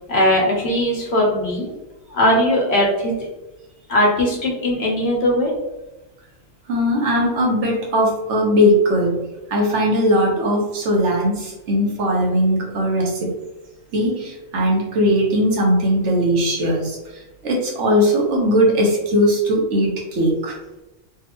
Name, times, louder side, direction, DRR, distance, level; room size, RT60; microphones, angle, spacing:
voice 1, 0.1-1.7 2.1-3.3 3.9-5.5, left 1 dB, 65° left, -2 dB, 1.2 m, -19 dB
voice 2, 6.7-9.2 9.5-13.3 13.9-20.6, equal, 80° right, -1 dB, 1.2 m, -19 dB
3.5 x 2.4 x 2.9 m, 1.0 s
omnidirectional pair, 1.2 m